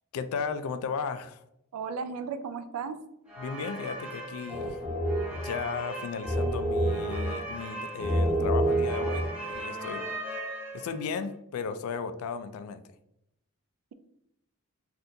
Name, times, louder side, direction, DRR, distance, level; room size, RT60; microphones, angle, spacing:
voice 1, 0.1-1.4 3.4-4.8 5.3-10.0 10.7-12.8, left 5 dB, 75° left, 11 dB, 0.3 m, -35 dB
voice 2, 1.7-3.0, right 5 dB, 85° right, 10 dB, 0.4 m, -35 dB
sound 1, 3.3-11.2, right 1 dB, 5° right, 0.8 m, -30 dB
3.6 x 2.5 x 2.6 m, 0.81 s
head